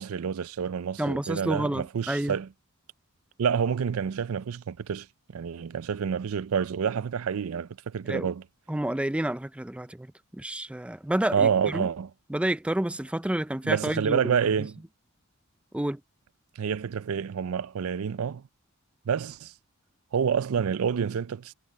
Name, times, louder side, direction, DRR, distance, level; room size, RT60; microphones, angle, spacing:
voice 1, 0.0-2.5 3.4-5.1 5.3-8.4 11.3-12.1 13.6-14.7 16.6-18.4 19.1-19.5 20.1-21.5, right 7 dB, 75° right, 0.4 m, -28 dB
voice 2, 1.0-2.4 8.1-8.3 8.7-11.9 12.3-14.3 15.7-16.0, right 1 dB, 5° right, 0.3 m, -29 dB
head